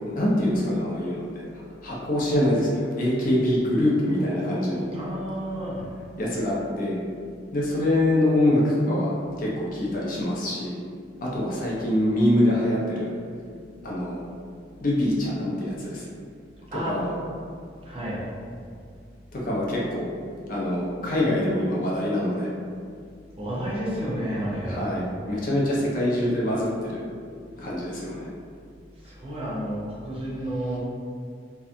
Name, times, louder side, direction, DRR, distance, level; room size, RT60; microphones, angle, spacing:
voice 1, 0.1-1.3 1.8-4.9 6.2-7.0 7.5-9.1 9.4-10.8 11.2-13.1 13.8-14.2 14.8-16.0 16.9-17.1 19.3-20.1 20.5-22.5 24.7-27.0 27.6-28.3, left 1 dB, 50° left, -5 dB, 0.5 m, -24 dB
voice 2, 4.9-5.9 16.7-16.9 17.8-18.2 23.4-24.8 28.9-30.8, right 1 dB, 30° right, -6 dB, 0.6 m, -31 dB
2.7 x 2.2 x 2.4 m, 2.3 s
head